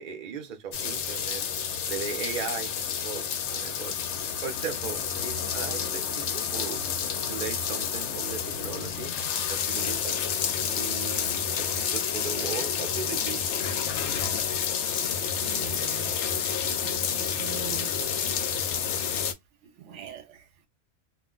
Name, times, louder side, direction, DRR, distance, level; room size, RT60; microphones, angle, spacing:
voice 1, 0.0-1.4 1.9-4.0 4.4-6.8 7.3-9.1 9.5-10.2 10.7-13.5, right 6 dB, 45° right, 0.7 m, -37 dB
sound 1, 0.7-19.3, left 7 dB, 70° left, 0.8 m, -29 dB
voice 2, 15.4-16.2 16.5-18.1 19.8-20.5, right 11 dB, 75° right, 0.9 m, -43 dB
2.4 x 2.1 x 3.7 m
omnidirectional pair, 1.3 m